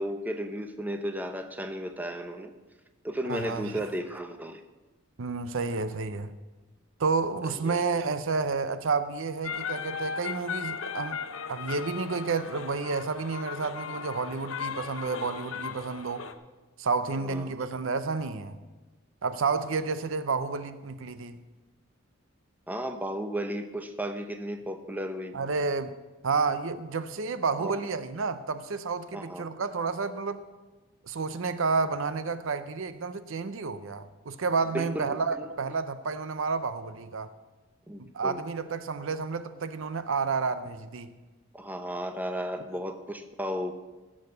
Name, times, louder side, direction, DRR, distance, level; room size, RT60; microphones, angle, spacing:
voice 1, 0.0-2.5 3.0-4.6 7.4-7.8 17.2-17.5 22.7-25.4 27.6-27.8 29.1-29.5 34.7-35.5 37.9-38.4 41.5-43.7, equal, 10° right, 0.7 m, -34 dB
voice 2, 3.3-3.8 5.2-6.3 7.0-16.3 16.8-18.6 19.2-21.4 25.3-26.0 26.2-30.4 31.0-37.3 38.0-41.1, right 4 dB, 65° right, 0.6 m, -30 dB
sound 1, 9.4-16.3, left 6 dB, 65° left, 0.7 m, -37 dB
15.5 x 6.3 x 6.7 m
head